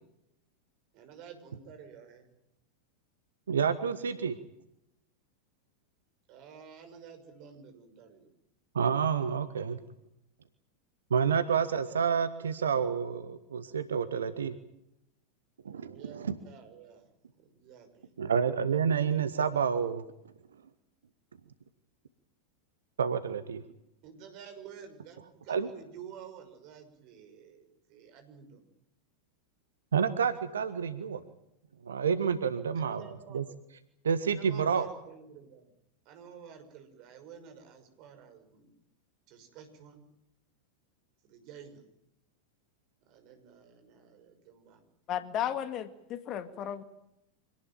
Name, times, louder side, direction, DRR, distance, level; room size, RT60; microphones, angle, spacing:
voice 1, 0.9-2.3 6.3-8.3 15.7-18.1 24.0-28.7 32.7-33.4 34.3-35.7 36.0-38.7 39.3-40.1 41.2-41.8 43.0-44.8, right 7 dB, 40° right, 7 dB, 6.1 m, -51 dB
voice 2, 3.5-4.4 8.7-9.8 11.1-14.6 15.6-16.3 18.2-20.0 23.0-23.6 25.5-25.7 29.9-31.2 31.8-33.0 33.3-33.4 34.0-34.9, right 7 dB, 70° right, 12 dB, 1.4 m, -29 dB
voice 3, 45.1-46.8, left 10 dB, 35° left, 11 dB, 2.1 m, -34 dB
26.0 x 18.5 x 9.2 m, 0.83 s
figure-of-eight pair, 90°, 0 cm